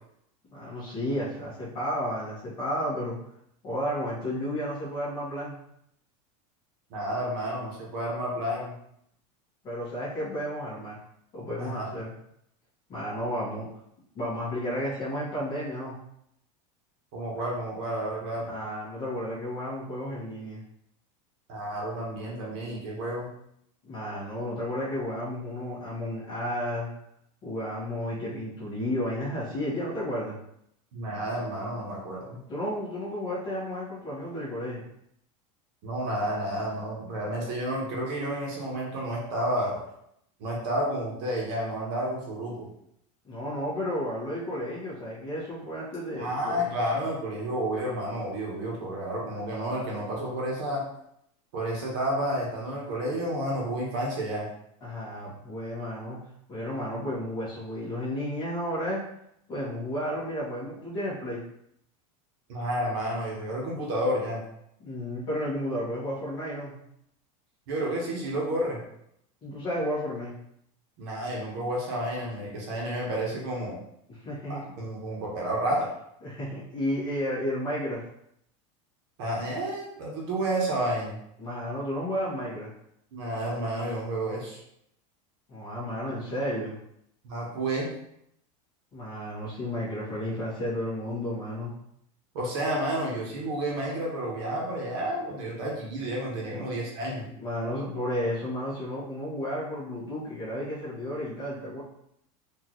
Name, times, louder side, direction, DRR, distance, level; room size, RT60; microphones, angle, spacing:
voice 1, 0.5-3.2 3.6-5.5 9.6-11.0 11.3-12.1 12.9-13.7 14.1-16.0 18.5-20.6 23.8-26.9 27.4-30.3 32.5-34.8 37.3-37.5 43.2-46.7 54.8-56.2 56.5-59.0 59.5-61.4 64.8-66.7 69.4-70.3 74.1-74.6 76.2-78.0 81.4-82.7 85.5-86.8 88.9-91.7 96.5-96.6 97.4-101.8, equal, 25° left, -8 dB, 1.5 m, -32 dB
voice 2, 6.9-8.7 11.6-11.9 17.1-18.5 21.5-23.3 30.9-32.4 35.8-39.7 40.4-42.7 46.2-50.8 51.5-54.5 62.5-64.4 67.7-68.8 71.0-73.8 74.5-75.9 79.2-81.2 83.1-84.6 87.2-87.9 92.3-97.3, right 1 dB, 50° right, -3 dB, 1.2 m, -30 dB
4.3 x 2.7 x 3.0 m, 0.75 s
supercardioid pair, 180°, 17 cm